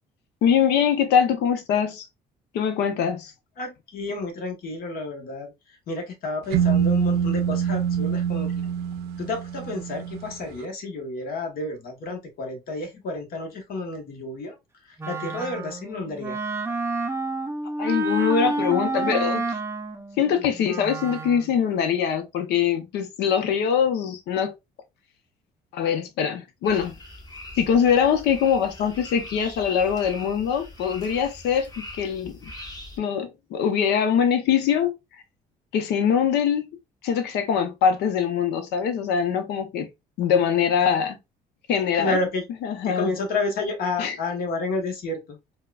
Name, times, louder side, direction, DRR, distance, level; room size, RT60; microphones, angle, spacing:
voice 1, 0.4-2.1 2.5-3.3 17.8-19.6 20.2-24.5 25.7-26.9 27.6-31.7 32.0-32.3 33.0-34.9 35.7-36.7 37.0-39.9 40.2-41.2 41.7-42.2 42.6-43.1 44.0-44.1, left 7 dB, 80° left, 0.7 m, -23 dB
voice 2, 3.6-8.5 9.2-14.6 14.8-16.4 41.9-42.5 42.8-45.4, left 2 dB, 60° left, 1.1 m, -30 dB
sound 1, 6.5-10.4, right 8 dB, 75° right, 0.5 m, -25 dB
Wind instrument woodwind instrument, 15.0-21.5, right 2 dB, 15° right, 0.5 m, -29 dB
sound 2, 26.6-33.0, left 1 dB, 25° left, 1.1 m, -42 dB
4.5 x 2.2 x 2.3 m
cardioid pair, 110°, 17 cm